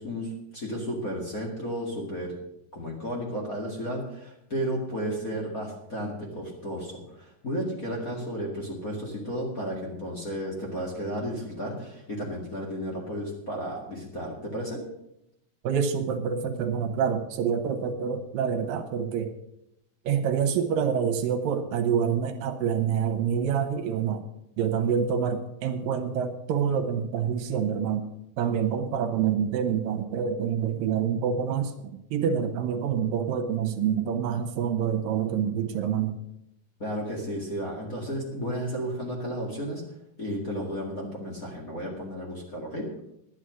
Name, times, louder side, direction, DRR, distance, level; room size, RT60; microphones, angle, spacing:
voice 1, 0.0-2.3 2.7-14.8 36.8-39.8 40.2-42.9, equal, 30° left, -3 dB, 2.0 m, -33 dB
voice 2, 15.6-19.3 20.0-24.2 24.6-28.1 28.4-36.2, right 7 dB, 80° right, 7 dB, 2.7 m, -27 dB
11.0 x 10.0 x 6.3 m, 0.82 s
omnidirectional pair, 4.0 m